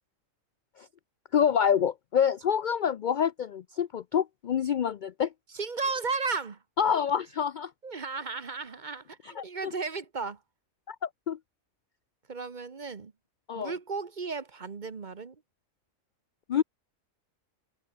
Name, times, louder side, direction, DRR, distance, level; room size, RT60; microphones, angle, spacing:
voice 1, 1.3-5.3 6.8-7.7 9.2-9.7 10.9-11.4 13.5-13.7 16.5-16.6, left 8 dB, 65° left, 0.4 m, -27 dB
voice 2, 5.5-6.6 7.8-10.4 12.3-13.1 13.5-15.4, right 4 dB, 35° right, 1.1 m, -34 dB
omnidirectional pair, 1.4 m